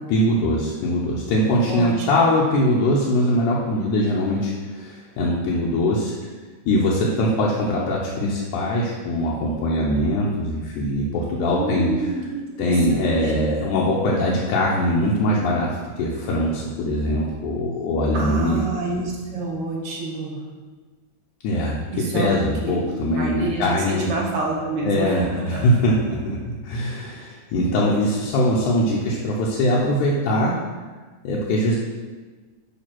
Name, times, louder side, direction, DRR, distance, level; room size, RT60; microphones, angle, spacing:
voice 1, 0.1-6.1 6.7-11.9 12.6-18.6 21.4-21.9 22.1-24.1 24.9-30.6 31.2-31.8, left 1 dB, 80° left, -5 dB, 2.3 m, -22 dB
voice 2, 1.7-2.1 11.6-13.5 18.1-20.4 21.9-22.3 22.6-22.8 23.1-25.6, right 2 dB, 55° right, -2 dB, 2.1 m, -28 dB
9.5 x 3.4 x 5.9 m, 1.4 s
omnidirectional pair, 3.5 m